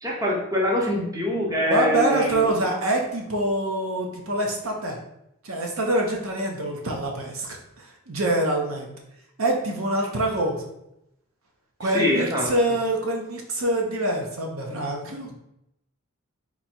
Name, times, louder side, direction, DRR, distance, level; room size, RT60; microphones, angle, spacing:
voice 1, 0.0-2.5 11.9-12.5, left 1 dB, 15° right, -2 dB, 0.9 m, -24 dB
voice 2, 1.7-5.0 5.4-8.9 9.4-10.7 11.8-15.3, right 1 dB, 85° right, 1 dB, 0.9 m, -25 dB
4.1 x 3.0 x 4.4 m, 0.82 s
head